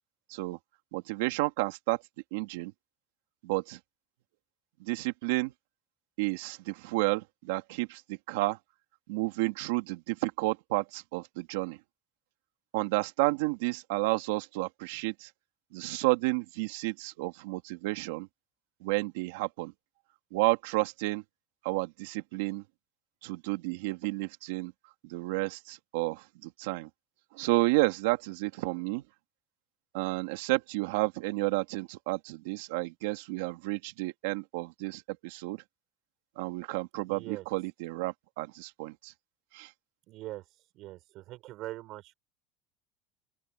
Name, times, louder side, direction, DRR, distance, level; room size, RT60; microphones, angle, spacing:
voice 1, 0.9-2.0 2.3-2.7 3.4-3.8 4.8-5.5 6.2-8.6 9.1-11.8 12.7-15.3 15.7-18.3 18.8-19.7 20.3-21.2 21.6-22.6 23.2-24.7 25.0-26.9 27.3-29.0 29.9-35.6 36.4-39.1 39.5-39.7, right 22 dB, 80° right, 2.3 m, -31 dB
voice 2, 37.1-37.5 40.1-40.4 40.7-42.1, right 17 dB, 55° right, 6.5 m, -42 dB
open air
supercardioid pair, 130°, 0 cm